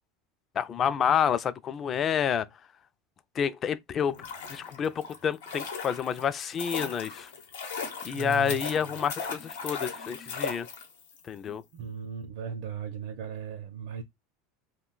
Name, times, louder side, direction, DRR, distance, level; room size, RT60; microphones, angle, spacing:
voice 1, 0.6-2.5 3.4-7.3 8.0-10.7 11.2-11.6, left 8 dB, 35° left, 0.3 m, -29 dB
sound 1, 4.0-11.2 11.5-11.6, left 5 dB, 90° left, 0.8 m, -38 dB
voice 2, 8.1-8.6 11.7-14.0, right 6 dB, 70° right, 0.5 m, -37 dB
2.3 x 2.2 x 3.7 m
supercardioid pair, 120°, 0 cm